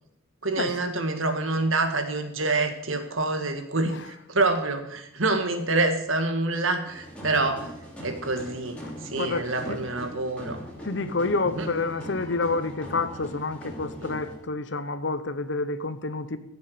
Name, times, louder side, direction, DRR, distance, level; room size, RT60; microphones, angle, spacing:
voice 1, 0.4-7.7 8.0-10.6 11.6-11.7 14.0-14.2, right 2 dB, 75° right, 1.8 m, -27 dB
voice 2, 3.8-4.1 9.2-9.8 10.8-16.4, left 3 dB, 60° left, 0.8 m, -29 dB
sound 1, 6.9-14.3, equal, 5° left, 3.3 m, -40 dB
16.0 x 7.1 x 6.7 m
head